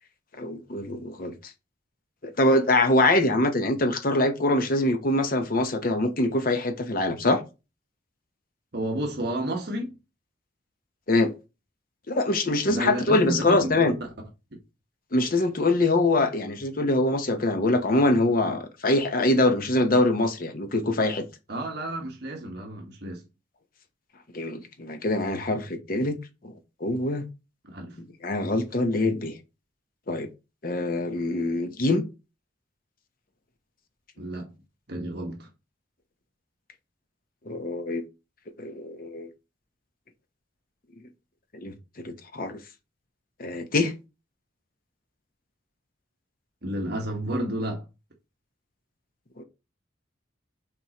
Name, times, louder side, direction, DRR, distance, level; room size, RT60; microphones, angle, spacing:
voice 1, 0.4-1.3 2.2-7.4 11.1-11.3 12.1-13.9 15.1-21.2 24.3-26.2 26.4-26.5 26.8-27.2 28.2-29.4 30.1-30.3 30.6-32.0 37.5-38.0 38.6-39.3 41.6-42.6 43.4-43.9 49.4-49.5, left 2 dB, 45° left, 0.8 m, -24 dB
voice 2, 8.7-10.0 12.7-14.0 21.5-23.2 27.6-28.0 34.2-34.5 34.9-35.5 46.6-47.8, right 1 dB, 55° right, 1.4 m, -31 dB
7.4 x 4.3 x 3.0 m
head